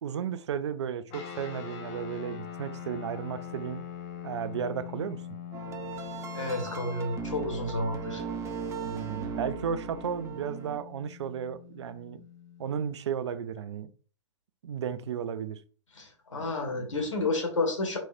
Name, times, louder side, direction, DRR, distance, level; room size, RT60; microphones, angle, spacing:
voice 1, 0.0-3.8 4.2-5.2 8.8-12.2 12.6-13.9 14.6-15.6, right 8 dB, 65° right, 0.5 m, -34 dB
sound 1, 1.1-12.9, left 9 dB, 35° left, 1.0 m, -43 dB
sound 2, 5.5-10.8, right 6 dB, 20° right, 0.8 m, -38 dB
voice 2, 6.3-8.2 15.9-18.0, left 2 dB, 80° left, 1.8 m, -31 dB
4.6 x 4.3 x 2.6 m
figure-of-eight pair, 110°, 16 cm